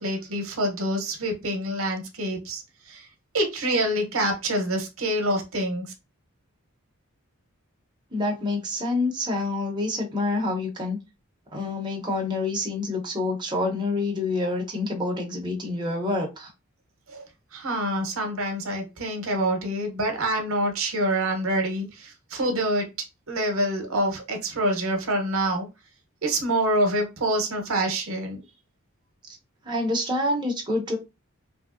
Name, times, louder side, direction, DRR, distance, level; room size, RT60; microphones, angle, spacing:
voice 1, 0.0-3.1 3.3-5.9 17.1-22.9 23.3-25.7 26.2-28.4, right 1 dB, 70° right, 0.8 m, -26 dB
voice 2, 8.1-11.0 11.5-16.5 29.6-31.0, left 2 dB, 20° right, 0.7 m, -27 dB
3.0 x 2.7 x 2.4 m
head